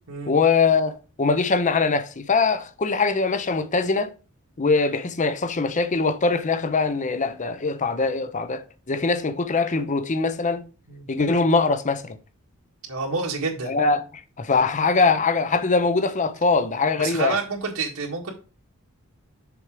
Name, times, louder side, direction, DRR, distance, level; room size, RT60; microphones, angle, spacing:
voice 1, 0.3-4.1 4.6-10.6 11.1-12.2 13.6-14.0 14.4-17.4, left 4 dB, 35° left, 0.7 m, -22 dB
voice 2, 12.8-13.8 17.0-18.3, right 4 dB, 90° right, 1.8 m, -28 dB
7.0 x 4.7 x 4.9 m
head